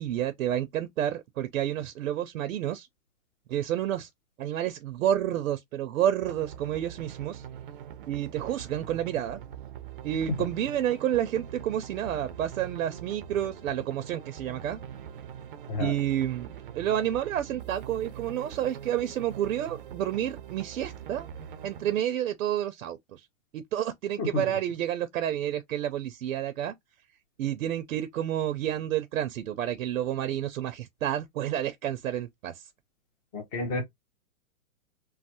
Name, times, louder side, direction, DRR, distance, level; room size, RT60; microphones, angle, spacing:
voice 1, 0.0-2.9 3.5-4.1 4.4-7.4 8.1-9.4 10.0-14.8 15.8-21.3 21.6-23.2 23.5-26.7 27.4-32.6, right 11 dB, 85° right, 0.6 m, -30 dB
sound 1, 6.2-22.0, right 9 dB, 40° right, 0.4 m, -43 dB
voice 2, 33.3-33.8, left 3 dB, 15° left, 0.5 m, -30 dB
3.1 x 2.0 x 2.8 m
hypercardioid pair, 155°, 41 cm